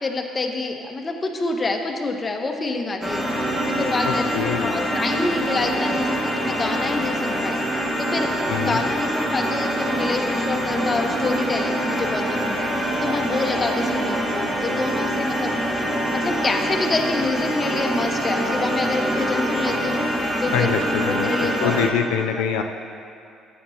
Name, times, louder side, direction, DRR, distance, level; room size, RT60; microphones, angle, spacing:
voice 1, 0.0-3.3 3.7-4.2 4.6-20.0 20.4-20.8 21.1-21.7 22.3-22.4, left 3 dB, 30° left, 2 dB, 1.1 m, -27 dB
sound 1, 3.0-21.9, equal, 10° right, 2.0 m, -24 dB
voice 2, 4.1-4.8 8.5-8.8 20.5-22.6, left 8 dB, 85° left, 4 dB, 0.4 m, -24 dB
14.0 x 8.5 x 2.9 m, 2.5 s
supercardioid pair, 75°, 0 cm